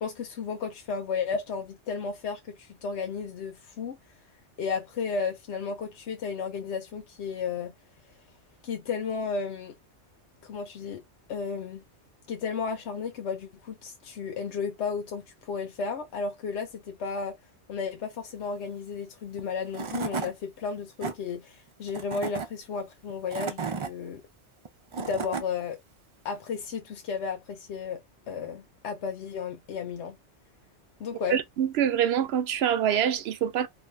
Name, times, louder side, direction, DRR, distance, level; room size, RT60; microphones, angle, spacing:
voice 1, 0.0-4.0 4.6-7.7 8.6-9.7 10.4-11.0 11.3-11.8 12.3-17.3 17.7-24.2 25.0-25.8 26.2-28.0 28.3-30.2 31.0-31.4, left 5 dB, 75° left, 1.0 m, -33 dB
Tools / Wood, 19.4-19.5 19.7-20.3 20.8-21.1 21.9-22.5 23.1-23.9 24.7-25.5, right 5 dB, 55° right, 0.3 m, -33 dB
voice 2, 31.3-33.7, right 9 dB, 70° right, 0.8 m, -25 dB
2.5 x 2.5 x 3.2 m
omnidirectional pair, 1.2 m